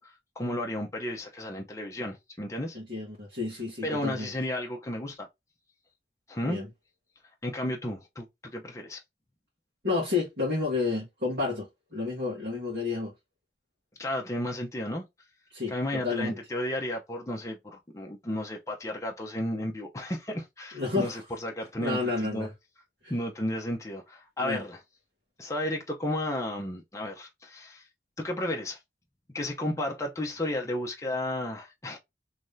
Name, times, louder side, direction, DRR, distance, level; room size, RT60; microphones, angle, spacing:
voice 1, 0.0-2.8 3.8-5.3 6.3-6.6 7.4-8.3 8.5-9.0 14.0-15.0 15.7-22.5 23.1-24.8 25.4-27.8 28.2-28.8 29.3-32.0, left 1 dB, 20° left, 0.6 m, -33 dB
voice 2, 2.7-4.3 6.4-6.7 9.8-13.1 15.5-16.4 20.7-21.1 21.8-22.5 24.4-24.6, left 3 dB, 65° right, 1.5 m, -30 dB
3.4 x 3.2 x 2.6 m
head